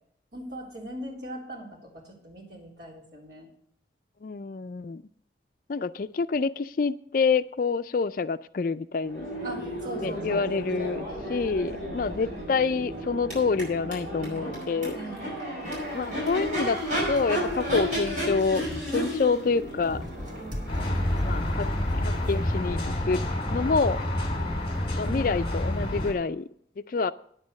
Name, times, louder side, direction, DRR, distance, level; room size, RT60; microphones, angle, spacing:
voice 1, 0.3-3.5 9.4-11.1 14.9-15.7 25.1-26.0, equal, 70° right, -2 dB, 3.6 m, -41 dB
voice 2, 4.2-5.0 5.7-9.3 10.0-15.0 15.9-16.8 17.1-20.0 21.2-21.7 22.0-23.2 23.5-24.0 24.9-26.5 26.8-27.1, left 4 dB, 50° left, 13 dB, 0.4 m, -27 dB
Crowd / Race car auto racing / Accelerating revving vroom, 9.0-22.8, equal, 40° right, 5.8 m, -33 dB
sound 1, 15.6-22.6, left 1 dB, 25° right, 2.3 m, -41 dB
sound 2, 20.7-26.1, left 1 dB, 30° left, 2.3 m, -28 dB
9.5 x 8.4 x 6.5 m, 0.64 s
head